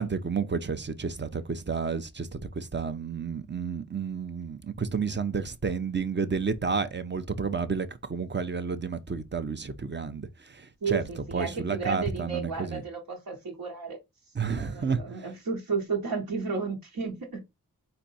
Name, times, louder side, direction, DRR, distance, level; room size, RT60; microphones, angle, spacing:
voice 1, 0.0-11.0 11.3-12.8 14.3-15.2, right 5 dB, 30° right, 0.6 m, -31 dB
voice 2, 10.8-14.0 14.6-17.4, right 5 dB, 70° right, 1.4 m, -33 dB
4.3 x 2.7 x 4.1 m
wide cardioid pair, 70°, 35 cm